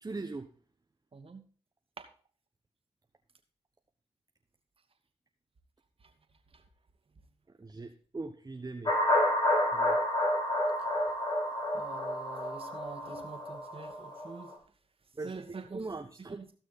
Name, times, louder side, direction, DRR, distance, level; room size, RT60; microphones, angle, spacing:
voice 1, 0.0-0.5 7.6-8.9 9.7-10.0 15.2-16.5, right 3 dB, 35° right, 5 dB, 1.1 m, -40 dB
voice 2, 1.1-1.4 2.0-2.1 11.7-14.5 15.2-15.8 16.3-16.5, right 4 dB, 55° right, 6 dB, 2.3 m, -45 dB
sound 1, 8.9-14.5, left 1 dB, 40° left, 3.9 m, -30 dB
16.5 x 6.2 x 4.2 m, 0.40 s
supercardioid pair, 45°, 12 cm